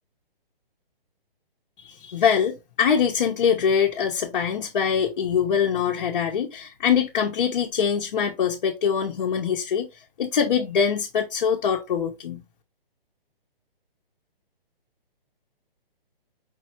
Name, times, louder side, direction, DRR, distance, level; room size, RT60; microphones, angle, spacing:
voice 1, 1.8-9.9 10.2-12.4, left 7 dB, 50° left, 0.9 m, -23 dB
5.3 x 3.2 x 3.0 m
hypercardioid pair, 160°, 29 cm